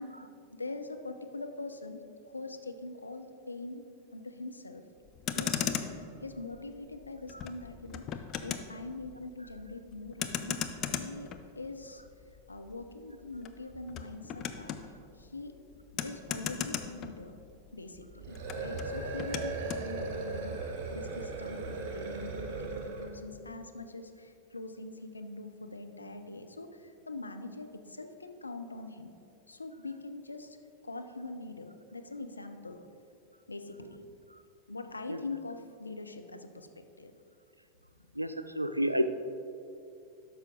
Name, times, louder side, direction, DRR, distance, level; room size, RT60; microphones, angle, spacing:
voice 1, 0.0-3.8 4.1-4.8 5.3-5.9 6.2-10.6 10.9-12.0 12.5-14.7 15.2-15.5 16.0-17.4 17.7-29.1 29.5-30.6 30.8-32.8 33.5-34.0 34.7-37.1, left 3 dB, 80° left, 6 dB, 0.6 m, -43 dB
Motor vehicle (road), 5.1-17.7 18.0-19.9, left 8 dB, 35° left, 0.5 m, -38 dB
sound 1, 18.2-23.2, right 3 dB, 45° right, 1.1 m, -37 dB
voice 2, 38.1-39.0, equal, 85° right, 10 dB, 0.4 m, -30 dB
12.5 x 5.7 x 3.8 m, 2.7 s
figure-of-eight pair, 90°, 0 cm